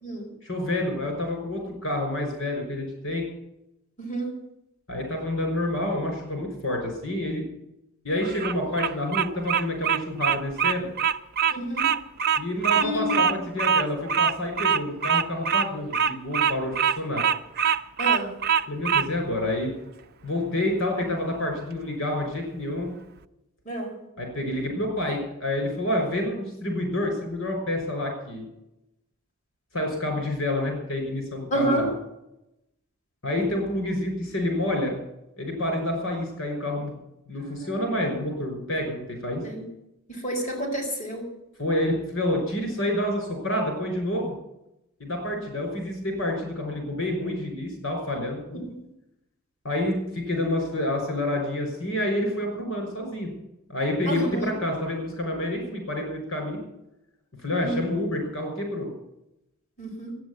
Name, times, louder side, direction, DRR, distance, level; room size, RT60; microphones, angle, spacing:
voice 1, 0.4-3.2 4.9-7.4 8.0-10.9 12.4-17.2 18.7-19.7 20.2-22.9 24.2-28.5 29.7-31.9 33.2-35.0 35.4-37.0 37.3-39.4 41.6-44.3 45.0-48.6 49.6-53.3 53.7-56.6 57.4-58.9, left 1 dB, 65° left, 2 dB, 5.8 m, -28 dB
voice 2, 4.0-4.3 11.5-11.9 12.7-13.2 18.0-18.3 23.6-24.0 31.5-31.9 37.3-38.1 39.4-39.6 40.1-41.3 48.6-48.8 54.0-54.5 57.6-57.8 59.8-60.2, right 1 dB, 35° left, -1 dB, 4.6 m, -29 dB
Bird vocalization bird call bird song, 8.2-19.1, right 7 dB, 45° right, 0.7 m, -23 dB
13.0 x 9.5 x 9.8 m, 0.87 s
head